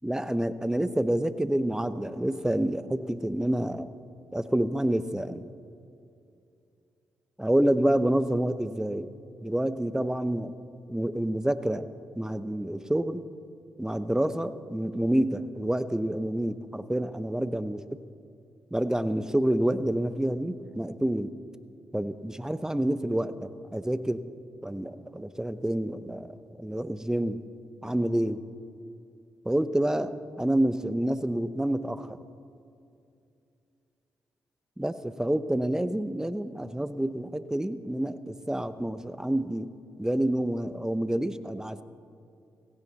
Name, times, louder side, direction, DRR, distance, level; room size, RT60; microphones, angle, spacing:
voice 1, 0.0-3.9 4.3-5.4 7.4-9.1 9.4-10.5 10.9-11.8 12.1-13.2 13.8-17.8 18.7-21.3 21.9-24.2 24.6-27.4 27.8-28.4 29.4-32.2 34.8-39.7 40.0-41.8, right 1 dB, 5° right, 13 dB, 0.7 m, -28 dB
16.5 x 15.5 x 4.1 m, 2.5 s
supercardioid pair, 50°, 8 cm